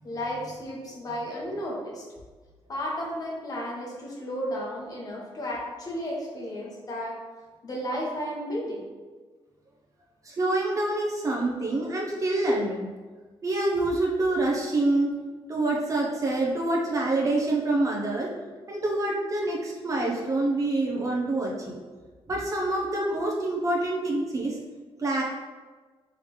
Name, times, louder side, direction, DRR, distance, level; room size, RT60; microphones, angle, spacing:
voice 1, 0.0-2.0 2.7-7.2 7.6-8.8 15.1-15.2, equal, 40° left, -3 dB, 1.1 m, -33 dB
voice 2, 10.2-12.9 13.4-15.1 15.5-18.3 18.7-21.8 22.3-24.5 25.0-25.2, right 2 dB, 35° right, -2 dB, 0.8 m, -26 dB
4.9 x 3.3 x 3.1 m, 1.4 s
cardioid pair, 120°, 10 cm